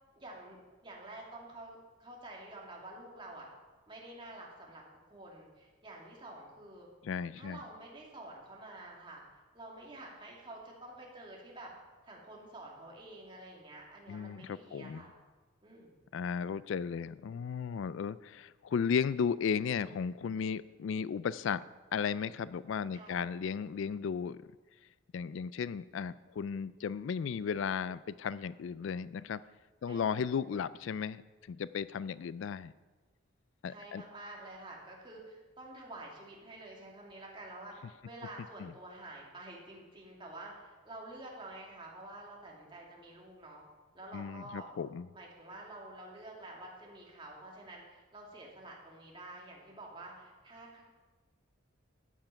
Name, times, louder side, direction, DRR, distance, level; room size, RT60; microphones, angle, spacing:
voice 1, 0.2-3.5 3.9-6.9 7.3-9.2 9.5-11.7 12.0-15.1 15.6-15.9 22.9-23.2 29.9-30.3 33.7-43.6 43.9-44.7 45.1-50.8, right 2 dB, 25° right, -2 dB, 2.5 m, -49 dB
voice 2, 7.0-7.6 14.1-15.0 16.1-21.6 21.9-24.4 25.1-29.4 29.8-31.2 31.5-32.7 33.6-34.0 38.6-38.7 44.1-45.1, left 6 dB, 65° left, 17 dB, 0.3 m, -35 dB
13.5 x 9.1 x 5.8 m, 1.3 s
head